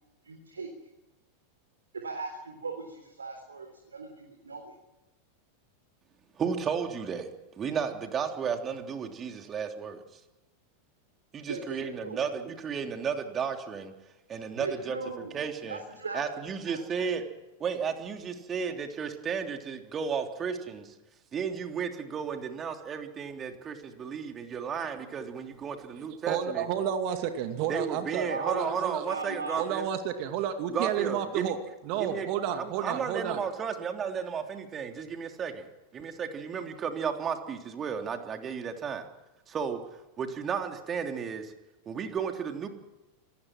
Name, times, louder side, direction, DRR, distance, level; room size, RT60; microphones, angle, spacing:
voice 1, 0.2-0.7 2.0-4.7 11.5-12.2 14.5-15.3 15.7-16.2 16.7-17.1 28.2-28.7 29.1-29.7, right 3 dB, 75° right, 4 dB, 3.7 m, -38 dB
voice 2, 6.4-7.3 7.6-10.0 11.3-13.9 14.3-15.8 16.1-17.2 17.6-20.9 21.3-26.7 27.7-29.9 30.7-31.5 32.0-32.3 32.5-35.7 35.9-39.1 39.5-39.8 40.2-41.5 41.9-42.7, right 6 dB, 25° right, 5 dB, 3.2 m, -33 dB
voice 3, 26.3-29.0 29.6-31.6 31.9-33.4, right 9 dB, 45° right, 7 dB, 2.3 m, -31 dB
26.0 x 19.5 x 6.3 m, 1.0 s
figure-of-eight pair, 90°, 0 cm